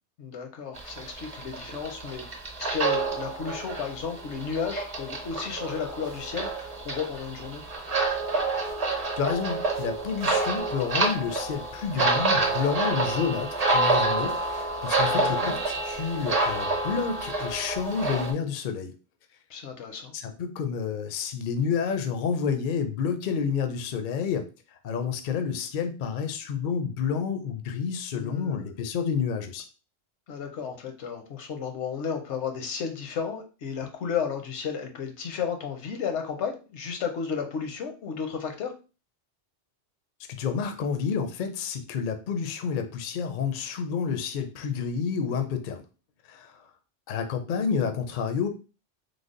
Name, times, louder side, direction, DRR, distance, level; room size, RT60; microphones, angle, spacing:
voice 1, 0.2-2.2 2.6-7.6 15.1-15.6 19.5-20.1 28.1-28.7 30.3-38.7, left 6 dB, 80° left, 4 dB, 1.0 m, -33 dB
sound 1, 0.8-18.3, right 3 dB, 40° right, 0.7 m, -28 dB
voice 2, 9.2-18.9 20.1-24.5 24.8-29.6 40.3-45.8 46.3-46.6 47.1-48.5, left 6 dB, 60° left, 7 dB, 0.6 m, -29 dB
3.3 x 2.0 x 3.7 m, 0.33 s
omnidirectional pair, 1.2 m